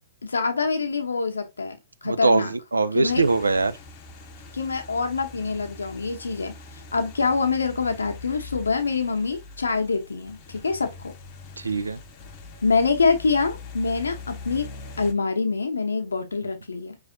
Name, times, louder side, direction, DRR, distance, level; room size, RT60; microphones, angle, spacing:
voice 1, 0.2-1.8 2.0-2.5 2.9-3.2 4.5-6.5 6.9-11.1 12.6-14.7 15.0-17.0, left 4 dB, 75° left, 0.8 m, -25 dB
voice 2, 2.0-3.8 11.6-12.0, right 3 dB, 80° right, 0.3 m, -22 dB
sound 1, 3.0-15.1, left 3 dB, 35° left, 0.7 m, -43 dB
4.9 x 3.2 x 2.6 m
figure-of-eight pair, 110°, 0 cm